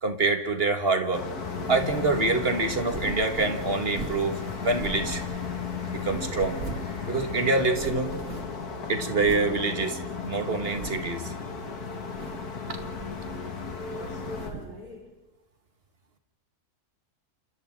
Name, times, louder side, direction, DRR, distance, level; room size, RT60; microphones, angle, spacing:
voice 1, 0.0-1.3 1.7-5.2 5.9-6.6 7.1-8.2 8.9-11.3, right 3 dB, 40° right, 6 dB, 2.1 m, -26 dB
sound 1, 1.1-14.5, left 5 dB, 75° left, 2.5 m, -35 dB
sound 2, 1.4-7.7, left 2 dB, 30° left, 1.9 m, -44 dB
sound 3, 1.6-2.1 2.7-4.3 4.7-5.6 6.0-7.0 7.2-7.3 7.6-8.7 9.2-9.5 10.0-10.1 10.6-11.2 12.0-12.5 12.7-13.6 14.0-14.8, right 3 dB, 55° right, 2.4 m, -40 dB
voice 2, 13.8-15.2, left 2 dB, 70° right, -3 dB, 5.6 m, -43 dB
29.0 x 27.5 x 3.9 m, 1.0 s
omnidirectional pair, 1.7 m